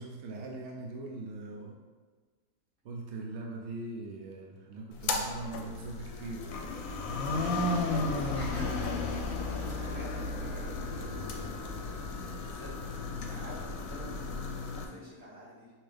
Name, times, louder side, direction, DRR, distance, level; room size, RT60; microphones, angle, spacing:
voice 1, 0.0-1.8 2.8-6.5, right 2 dB, 70° right, 0 dB, 0.6 m, -41 dB
sound 1, 4.9-14.8, left 3 dB, 70° left, 0.9 m, -34 dB
voice 2, 7.7-11.9 12.1-15.7, left 1 dB, 40° right, -9 dB, 1.9 m, -47 dB
5.7 x 2.7 x 3.3 m, 1.4 s
omnidirectional pair, 1.7 m